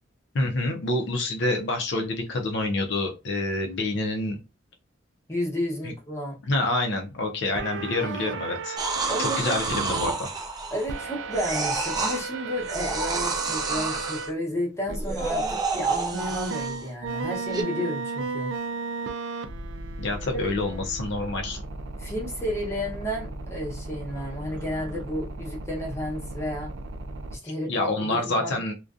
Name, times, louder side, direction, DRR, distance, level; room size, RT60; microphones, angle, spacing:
voice 1, 0.3-4.4 6.5-8.8 9.2-10.3 20.0-21.6 27.4-28.7, left 2 dB, 65° left, 0.5 m, -27 dB
voice 2, 5.3-6.4 9.1-9.6 10.7-18.5 20.3-20.4 22.0-26.7 27.3-28.6, equal, 15° left, 0.8 m, -32 dB
sound 1, 7.6-10.1 10.9-14.3 14.9-15.0 16.1-27.4, right 3 dB, 75° right, 0.4 m, -35 dB
sound 2, 8.8-11.0 11.3-12.2 12.6-14.3 14.9-16.9 17.5-17.6, right 3 dB, 20° right, 0.5 m, -29 dB
2.5 x 2.2 x 2.4 m
head